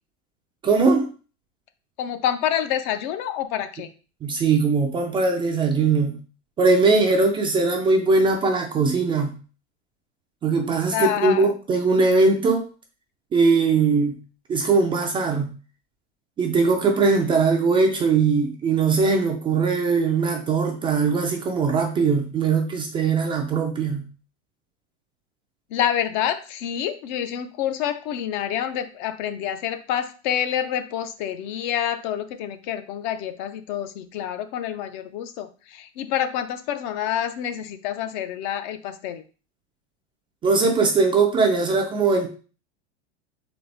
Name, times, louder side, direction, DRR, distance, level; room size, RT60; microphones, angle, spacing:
voice 1, 0.6-1.1 4.2-6.2 6.6-9.4 10.4-12.7 13.3-14.2 14.5-15.5 16.4-24.0 40.4-42.3, right 4 dB, 15° right, 3 dB, 0.4 m, -20 dB
voice 2, 2.0-3.9 10.9-11.5 25.7-39.2, left 10 dB, 45° left, 10 dB, 0.5 m, -27 dB
4.0 x 3.7 x 3.4 m, 0.36 s
supercardioid pair, 140°, 34 cm